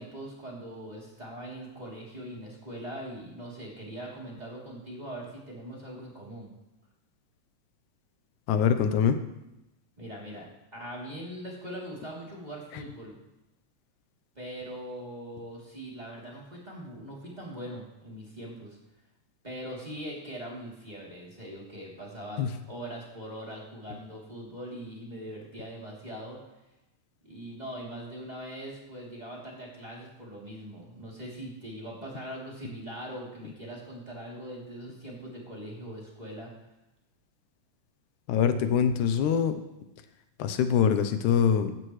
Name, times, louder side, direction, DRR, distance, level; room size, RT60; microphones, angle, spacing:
voice 1, 0.0-6.5 10.0-13.2 14.3-18.8 19.4-26.4 27.2-36.5, right 1 dB, 15° right, -4 dB, 3.0 m, -41 dB
voice 2, 8.5-9.2 22.4-22.5 38.3-39.6 40.4-41.7, left 7 dB, 85° left, 9 dB, 2.3 m, -24 dB
16.5 x 12.5 x 3.2 m, 0.94 s
omnidirectional pair, 3.4 m